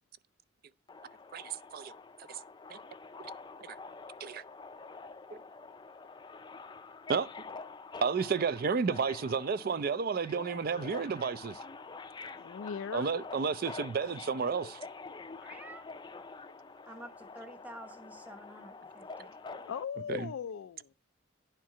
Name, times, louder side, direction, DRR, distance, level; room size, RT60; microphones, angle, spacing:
Subway metro underground, 0.9-19.8, left 4 dB, 20° left, 0.4 m, -47 dB
voice 1, 1.3-1.9 2.3-2.4 2.7-2.8 4.2-4.4 5.3-5.4 7.1-7.3 8.0-11.6 12.9-14.8 19.5-19.6 20.1-20.3, right 5 dB, 50° right, 0.4 m, -32 dB
voice 2, 12.4-13.2 19.6-20.9, left 7 dB, 90° left, 0.4 m, -39 dB
voice 3, 15.4-15.8 16.9-19.4, right 1 dB, 10° right, 1.0 m, -49 dB
10.0 x 4.5 x 4.8 m
head